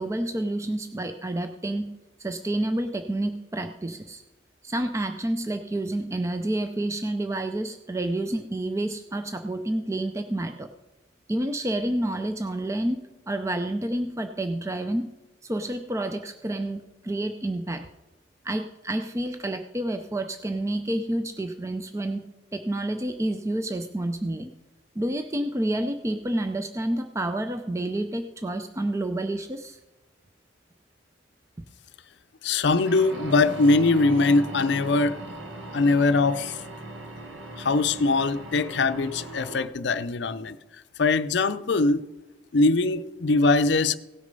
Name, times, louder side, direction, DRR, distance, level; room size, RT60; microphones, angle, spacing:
voice 1, 0.0-4.2 4.6-10.7 11.3-13.0 13.3-15.1 15.4-17.9 18.4-24.5 25.0-29.8, right 1 dB, 15° right, 7 dB, 0.4 m, -29 dB
voice 2, 32.4-35.2 35.7-36.6 37.6-40.6 41.0-42.0 42.5-43.9, left 3 dB, 60° left, 12 dB, 0.5 m, -22 dB
sound 1, 32.8-39.7, right 1 dB, 75° right, 1.4 m, -38 dB
17.0 x 6.5 x 5.3 m, 1.1 s
head